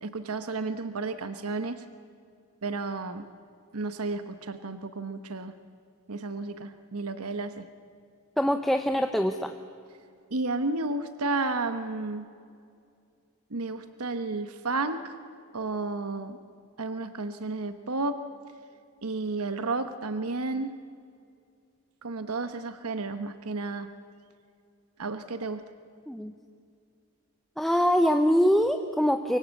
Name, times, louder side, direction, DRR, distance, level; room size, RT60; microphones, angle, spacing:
voice 1, 0.0-1.8 2.6-3.2 3.7-5.5 6.1-7.6 10.3-12.3 13.5-15.1 15.5-16.4 16.8-18.2 19.0-20.7 22.0-23.9 25.0-25.6, right 3 dB, 85° right, 10 dB, 1.1 m, -32 dB
voice 2, 8.4-9.6 26.1-26.3 27.6-29.4, equal, ahead, 6 dB, 0.7 m, -23 dB
24.0 x 23.5 x 8.4 m, 2.4 s
head